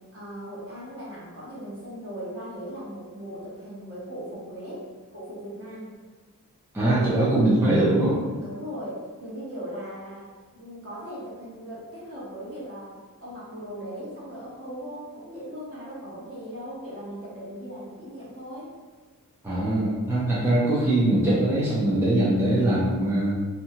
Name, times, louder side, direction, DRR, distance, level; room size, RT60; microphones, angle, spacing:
voice 1, 0.0-4.8 5.1-5.9 8.4-18.7, equal, 45° right, -8 dB, 1.1 m, -38 dB
voice 2, 6.7-8.2 19.4-23.3, right 1 dB, 10° right, -8 dB, 0.5 m, -22 dB
2.8 x 2.3 x 2.8 m, 1.4 s
wide cardioid pair, 135°, 33 cm